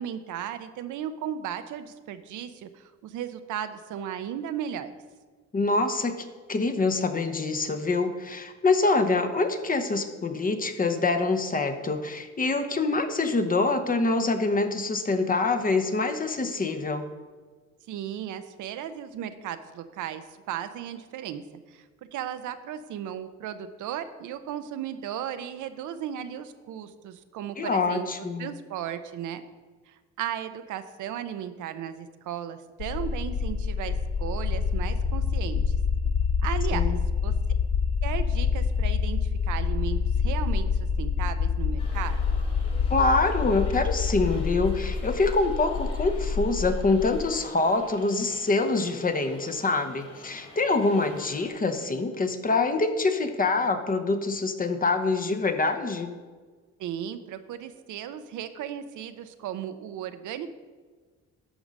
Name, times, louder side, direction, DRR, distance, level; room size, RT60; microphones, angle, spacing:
voice 1, 0.0-4.9 17.9-21.4 21.7-21.8 22.1-28.1 28.4-29.4 29.9-35.6 36.4-37.0 37.2-37.3 38.0-42.2 56.8-60.5, right 9 dB, 80° right, 10 dB, 0.7 m, -35 dB
voice 2, 5.5-17.0 27.6-28.5 36.7-37.0 42.9-56.1, left 3 dB, 30° left, 7 dB, 0.8 m, -25 dB
sound 1, 32.8-47.2, left 5 dB, 65° left, 0.8 m, -27 dB
sound 2, 41.8-51.5, left 2 dB, 50° left, 2.6 m, -48 dB
11.0 x 3.9 x 6.3 m, 1.4 s
cardioid pair, 90°, 30 cm